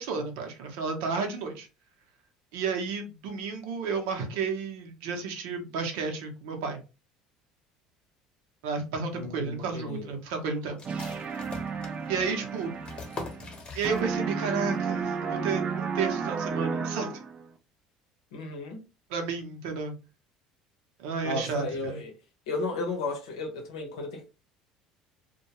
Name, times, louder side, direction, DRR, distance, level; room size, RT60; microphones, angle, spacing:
voice 1, 0.0-1.7 2.5-6.8 8.6-10.8 12.1-12.7 13.7-17.2 19.1-20.0 21.0-22.0, right 5 dB, 75° right, 0.7 m, -32 dB
voice 2, 9.1-10.1 18.3-18.8 21.2-22.1 22.5-24.3, left 2 dB, 90° left, 0.7 m, -34 dB
sound 1, 10.8-14.4 14.7-14.8 15.2-15.7, left 3 dB, 35° left, 0.8 m, -43 dB
sound 2, 10.8-13.6 13.8-17.5, right 5 dB, 40° right, 0.4 m, -32 dB
2.2 x 2.2 x 2.8 m
hypercardioid pair, 80°, 3 cm